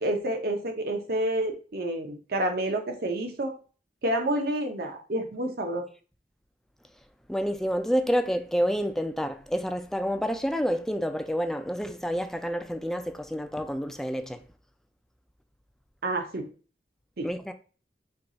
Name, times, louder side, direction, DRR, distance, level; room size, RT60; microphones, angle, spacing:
voice 1, 0.0-3.5 4.0-5.8 16.0-16.5 17.2-17.3, right 1 dB, 60° right, 0.8 m, -29 dB
voice 2, 7.3-14.4 17.2-17.5, equal, ahead, 0.3 m, -28 dB
4.6 x 2.4 x 3.9 m
head